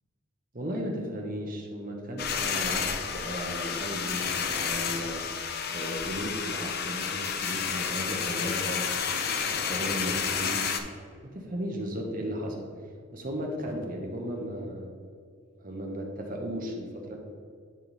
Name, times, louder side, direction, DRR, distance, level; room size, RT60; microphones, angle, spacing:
voice 1, 0.5-5.2 5.7-8.9 9.2-10.8 11.2-14.9 15.6-17.2, equal, 40° right, 1 dB, 1.0 m, -35 dB
sound 1, 2.2-10.8, left 6 dB, 50° left, 0.5 m, -31 dB
9.9 x 3.7 x 4.0 m, 2.2 s
head